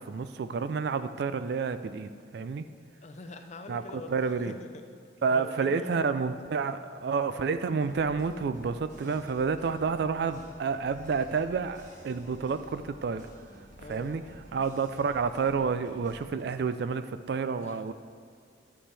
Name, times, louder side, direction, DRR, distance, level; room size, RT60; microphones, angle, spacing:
voice 1, 0.0-2.6 3.7-3.8 4.1-4.5 5.2-13.3 13.9-14.2 14.5-17.9, right 5 dB, 55° right, 11 dB, 0.3 m, -29 dB
voice 2, 3.0-4.9 5.3-6.1 13.8-14.2 17.6-17.9, left 2 dB, 35° left, 6 dB, 0.5 m, -44 dB
sound 1, 7.8-16.4, equal, 40° right, 1.6 m, -51 dB
11.5 x 7.2 x 3.3 m, 2.3 s
head